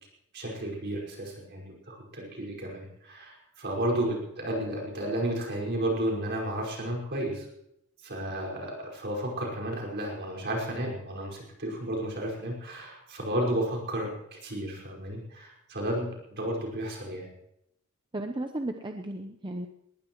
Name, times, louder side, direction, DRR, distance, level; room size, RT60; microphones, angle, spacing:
voice 1, 0.3-7.5 8.0-17.3, right 1 dB, 50° right, -1 dB, 5.2 m, -32 dB
voice 2, 18.1-19.7, right 1 dB, 20° right, 5 dB, 0.8 m, -34 dB
20.5 x 19.0 x 3.1 m, 0.80 s
head